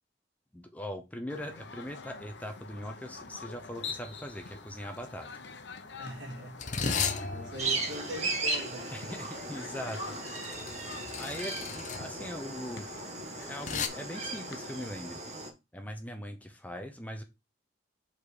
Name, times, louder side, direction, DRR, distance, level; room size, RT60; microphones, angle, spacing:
voice 1, 0.5-5.3 8.9-10.6 11.2-13.0 13.4-15.2 15.7-17.2, equal, 10° left, 0.7 m, -41 dB
sound 1, 1.3-14.9, left 4 dB, 75° left, 0.9 m, -46 dB
sound 2, 3.8-4.0 4.3-4.6 5.4-13.9, left 5 dB, 40° left, 0.7 m, -37 dB
voice 2, 6.0-6.6 6.8-9.2, right 1 dB, 75° right, 1.9 m, -42 dB
sound 3, 7.6-15.5, right 3 dB, 35° right, 1.3 m, -37 dB
5.2 x 4.3 x 4.9 m
head